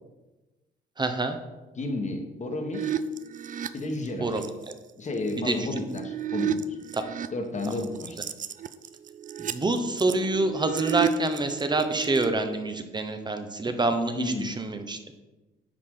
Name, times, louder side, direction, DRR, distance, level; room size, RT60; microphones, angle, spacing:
voice 1, 1.0-1.4 4.2-4.4 5.4-5.7 9.4-15.0, right 2 dB, 20° right, 7 dB, 0.9 m, -27 dB
voice 2, 1.7-3.0 3.7-4.4 5.0-6.8 7.3-8.2 14.1-14.5, left 2 dB, 35° left, 4 dB, 1.4 m, -32 dB
sound 1, 2.7-4.7 5.3-7.3 7.6-12.3, right 9 dB, 40° right, 0.4 m, -32 dB
10.0 x 4.8 x 3.8 m, 1.1 s
cardioid pair, 90°, 20 cm